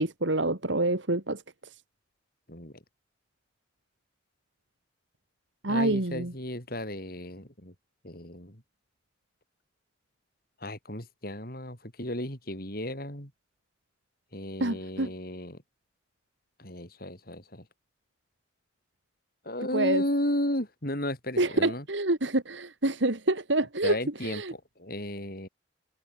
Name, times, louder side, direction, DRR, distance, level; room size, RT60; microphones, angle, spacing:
voice 1, 0.0-1.4 5.6-6.3 14.6-15.1 19.7-20.0 21.4-24.0 24.2-24.5, right 2 dB, 70° right, 2.4 m, -27 dB
voice 2, 2.5-2.8 5.7-7.7 8.0-8.6 10.6-13.3 14.3-15.6 16.6-17.7 19.4-21.9 23.8-25.5, left 1 dB, 50° left, 7.8 m, -34 dB
head